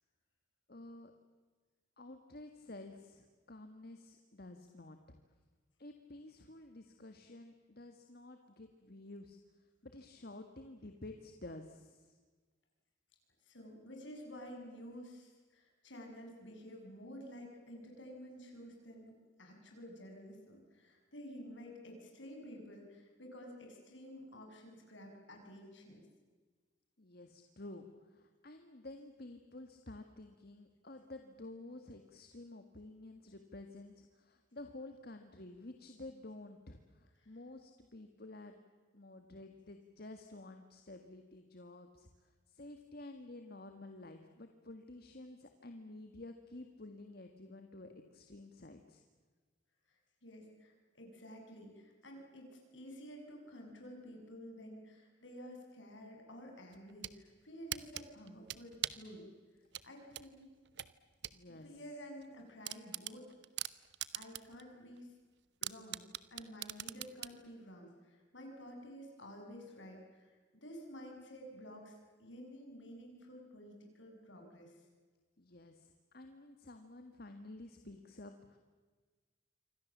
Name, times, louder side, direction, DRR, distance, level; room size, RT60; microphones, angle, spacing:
voice 1, 0.7-1.1 2.0-5.2 5.8-9.4 9.8-12.2 27.0-38.6 38.9-49.0 61.3-61.7 75.4-78.6, left 2 dB, 50° left, 6 dB, 1.7 m, -51 dB
voice 2, 13.5-19.1 19.4-26.0 50.2-59.3 59.8-60.5 61.6-63.2 64.1-65.1 65.6-66.1 66.3-74.7, equal, 70° left, 2 dB, 6.9 m, -51 dB
sound 1, 56.7-57.2 57.7-59.1 59.7-61.4 61.8-61.9 62.2-62.3 62.6-64.6 65.0-65.1 65.6-67.4, right 13 dB, 60° right, 0.9 m, -41 dB
27.5 x 24.5 x 7.4 m, 1.4 s
head